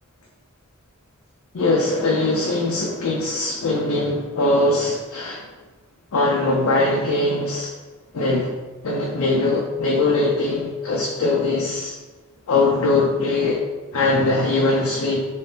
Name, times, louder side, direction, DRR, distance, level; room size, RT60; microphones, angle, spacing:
voice 1, 1.5-5.4 6.1-7.7 8.1-8.6 8.8-11.9 12.5-13.6 13.9-15.3, left 2 dB, 85° left, -2 dB, 0.5 m, -21 dB
3.0 x 2.8 x 3.3 m, 1.2 s
head